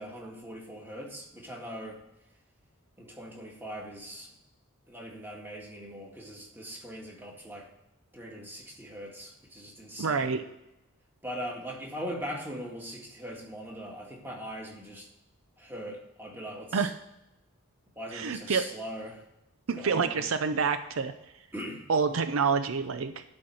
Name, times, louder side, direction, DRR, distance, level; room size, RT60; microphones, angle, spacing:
voice 1, 0.0-2.0 3.0-4.3 4.9-7.7 8.1-10.4 11.2-15.1 15.6-16.8 18.0-19.2 19.8-20.2 21.5-21.8, equal, 10° right, -1 dB, 1.8 m, -40 dB
voice 2, 10.0-10.4 16.7-17.0 18.1-18.7 19.7-21.1 21.9-23.2, right 5 dB, 70° right, 10 dB, 0.5 m, -27 dB
11.5 x 4.4 x 6.3 m, 0.88 s
head